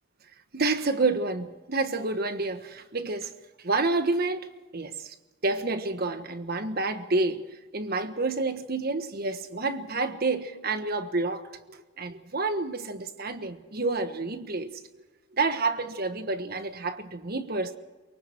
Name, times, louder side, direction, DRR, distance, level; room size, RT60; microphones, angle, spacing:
voice 1, 0.5-3.3 3.6-5.1 5.4-7.4 7.7-15.0 15.3-17.8, right 3 dB, 50° right, 1.4 m, -29 dB
24.0 x 23.5 x 4.6 m
head